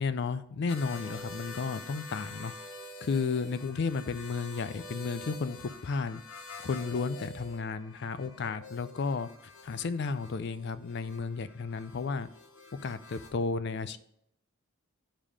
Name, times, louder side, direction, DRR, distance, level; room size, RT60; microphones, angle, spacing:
voice 1, 0.0-2.5 3.0-6.2 6.6-9.3 9.6-12.3 12.7-14.0, left 4 dB, 50° left, 14 dB, 0.4 m, -33 dB
sound 1, 0.7-13.3, left 2 dB, 80° left, 1.0 m, -47 dB
5.6 x 5.1 x 4.9 m, 0.75 s
head